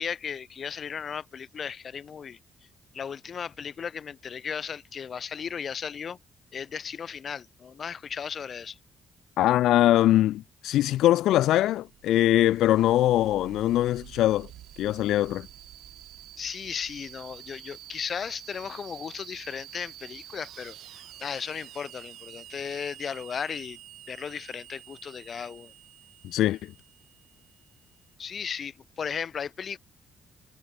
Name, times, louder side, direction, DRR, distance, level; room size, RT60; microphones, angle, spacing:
voice 1, 0.0-2.4 2.9-6.2 6.5-8.8 16.4-20.8 21.2-23.8 24.1-25.7 28.2-29.8, left 7 dB, 50° left, 1.2 m, -35 dB
voice 2, 9.4-14.5 14.8-15.5 26.2-26.7, left 14 dB, 85° left, 0.4 m, -22 dB
sound 1, 11.6-28.0, right 13 dB, 80° right, 2.2 m, -48 dB
cardioid pair, 90°, 0 cm